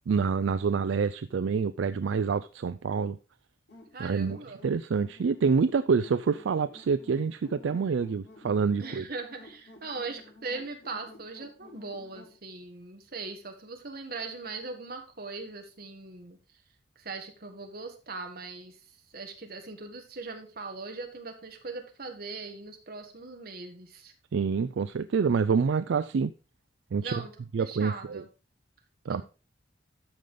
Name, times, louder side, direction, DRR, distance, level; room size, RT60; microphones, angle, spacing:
voice 1, 0.1-3.2 4.0-4.4 4.6-9.0 24.3-26.3 26.9-27.2 27.5-28.2 29.1-29.2, right 5 dB, 70° right, 14 dB, 0.4 m, -27 dB
sound 1, 3.7-12.4, left 1 dB, 65° left, 4.1 m, -53 dB
voice 2, 3.9-4.6 8.8-16.4 17.0-18.8 19.1-24.1 27.0-27.3 27.6-28.2 29.1-29.2, right 3 dB, 50° right, 4 dB, 1.8 m, -40 dB
13.0 x 5.1 x 3.8 m, 0.33 s
head